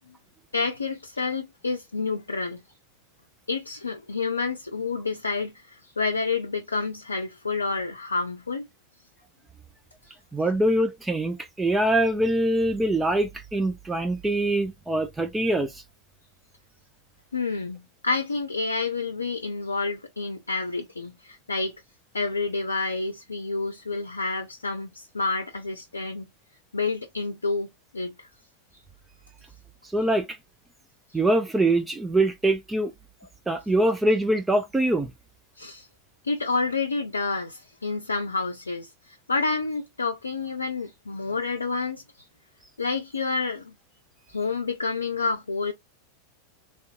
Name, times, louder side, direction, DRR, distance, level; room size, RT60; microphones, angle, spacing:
voice 1, 0.5-2.6 3.5-8.7 10.0-10.1 17.3-21.8 22.1-26.3 26.7-27.7 27.9-28.3 35.6-35.9 36.2-42.0 42.8-43.7 44.3-45.7, left 4 dB, 75° left, 0.4 m, -29 dB
voice 2, 10.3-15.8 29.9-30.4 31.1-32.9 33.5-35.1, right 1 dB, 10° right, 0.4 m, -23 dB
3.5 x 2.6 x 2.4 m
figure-of-eight pair, 90°, 0 cm